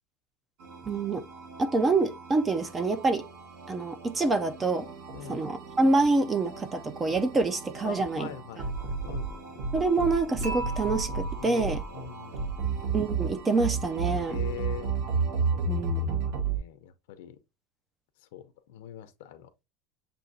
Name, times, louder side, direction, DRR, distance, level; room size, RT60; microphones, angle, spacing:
sound 1, 0.6-16.6, right 4 dB, 50° right, 1.4 m, -33 dB
voice 1, 0.8-1.3 1.6-3.2 3.7-4.9 5.3-8.3 9.7-11.8 12.9-14.4 15.7-16.2, right 3 dB, 15° right, 0.4 m, -26 dB
voice 2, 5.1-5.5 7.8-9.7 11.4-12.7 14.3-14.9 15.5-15.7 16.1-17.4 18.3-19.5, left 11 dB, 75° left, 0.6 m, -43 dB
Dishes pots and pans / Chink clink, 10.4-12.6, left 1 dB, 75° right, 2.1 m, -39 dB
7.0 x 2.8 x 2.7 m
cardioid pair, 175°, 0 cm